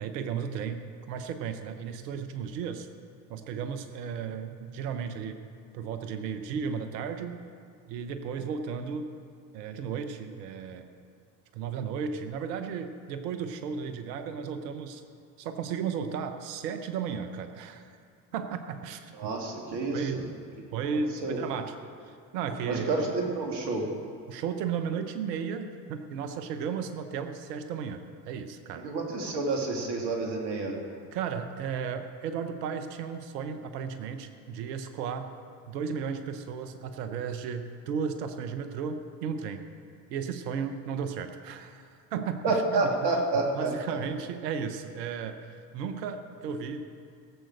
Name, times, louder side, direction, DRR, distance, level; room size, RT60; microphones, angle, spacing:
voice 1, 0.0-2.9 3.3-5.4 5.7-7.4 7.9-9.1 9.5-10.9 11.5-15.0 15.4-17.9 18.3-19.3 19.9-20.3 20.7-22.9 24.3-28.9 31.1-35.3 35.7-39.7 40.1-42.8 43.5-46.9, right 6 dB, 75° right, 8 dB, 1.1 m, -34 dB
voice 2, 19.2-20.2 21.2-21.4 22.6-23.8 28.8-30.8 42.4-44.0, right 3 dB, 55° right, 0 dB, 3.1 m, -29 dB
17.0 x 7.7 x 6.5 m, 2.3 s
hypercardioid pair, 65°, 49 cm